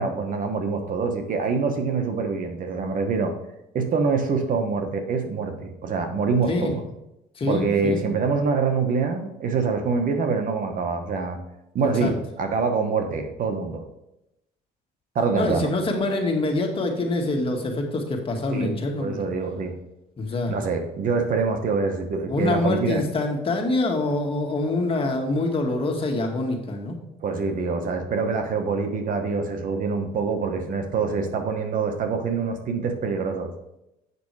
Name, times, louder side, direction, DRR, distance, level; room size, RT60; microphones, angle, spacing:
voice 1, 0.0-3.3 3.7-6.8 7.5-11.4 11.7-13.8 15.1-15.7 18.5-18.7 19.0-19.8 20.5-23.0 27.2-33.5, right 4 dB, 55° right, 5 dB, 1.4 m, -25 dB
voice 2, 7.4-8.1 12.0-12.1 15.4-19.2 20.2-20.5 22.3-27.0, left 2 dB, 35° left, 2 dB, 2.1 m, -25 dB
8.3 x 6.0 x 4.8 m, 0.88 s
cardioid pair, 110°, 17 cm